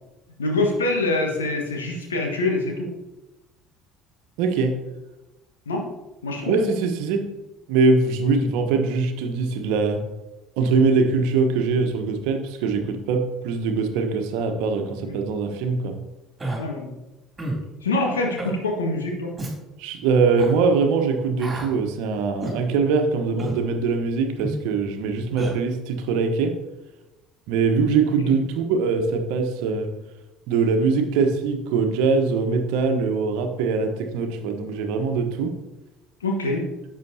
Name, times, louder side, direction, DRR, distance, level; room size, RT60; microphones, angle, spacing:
voice 1, 0.4-2.9 5.6-5.8 6.2-6.5 15.0-15.2 16.6-16.9 17.8-19.3 36.2-36.6, left 2 dB, 80° left, 1 dB, 1.6 m, -25 dB
voice 2, 4.4-4.7 6.4-7.3 7.7-10.0 10.6-15.9 19.8-26.5 27.5-29.9 30.5-35.5, right 4 dB, 60° right, 6 dB, 1.1 m, -22 dB
Human voice, 16.4-16.6 17.4-17.6 18.4-18.6 19.4-19.5 20.3-20.5 21.4-21.7 22.4-22.6 23.4-23.6 24.4-24.6 25.4-25.5, right 2 dB, 20° right, 2.9 m, -30 dB
10.5 x 7.4 x 2.8 m, 1.0 s
figure-of-eight pair, 60°, 0 cm